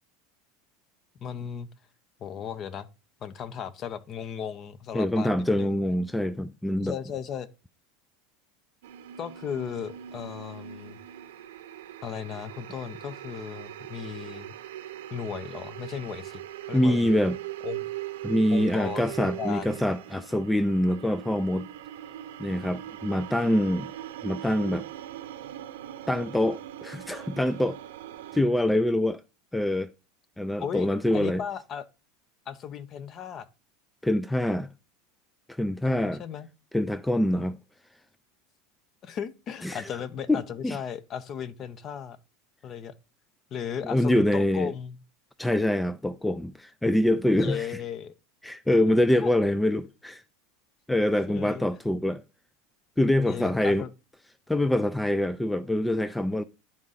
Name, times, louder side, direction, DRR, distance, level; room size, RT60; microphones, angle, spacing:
voice 1, 1.2-1.7 2.2-2.9 3.2-5.7 6.8-7.5 9.2-11.0 12.0-14.5 15.1-16.4 16.7-17.1 17.6-17.9 18.5-19.8 30.6-30.9 31.1-31.8 32.5-33.5 35.8-36.5 39.0-42.2 42.6-42.9 43.5-45.0 47.4-48.1 49.2-49.3 51.3-51.7 53.3-53.9, left 8 dB, 40° left, 0.8 m, -36 dB
voice 2, 4.9-6.9 16.7-17.4 18.2-21.7 22.4-23.9 24.2-24.9 26.1-27.8 28.3-29.2 29.5-29.9 30.4-31.4 34.0-34.7 35.5-36.2 36.7-37.6 39.6-39.8 40.3-40.8 43.8-44.7 45.4-47.8 48.4-50.2 50.9-52.2 53.0-53.8 54.5-56.4, left 1 dB, 5° left, 0.4 m, -25 dB
sound 1, 8.8-28.4, right 13 dB, 85° right, 0.8 m, -40 dB
10.5 x 3.7 x 4.0 m
supercardioid pair, 110°, 0 cm